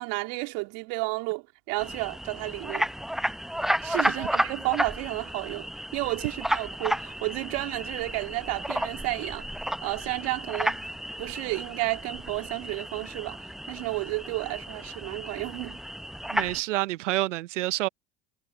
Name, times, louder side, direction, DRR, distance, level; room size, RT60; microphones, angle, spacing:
voice 1, 0.0-2.9 3.8-9.5 9.8-10.8 11.2-15.8, right 27 dB, 65° right, 3.3 m, -32 dB
sound 1, 1.8-16.6, equal, ahead, 0.7 m, -32 dB
voice 2, 16.3-17.9, right 17 dB, 85° right, 0.6 m, -28 dB
hypercardioid pair, 75°, 36 cm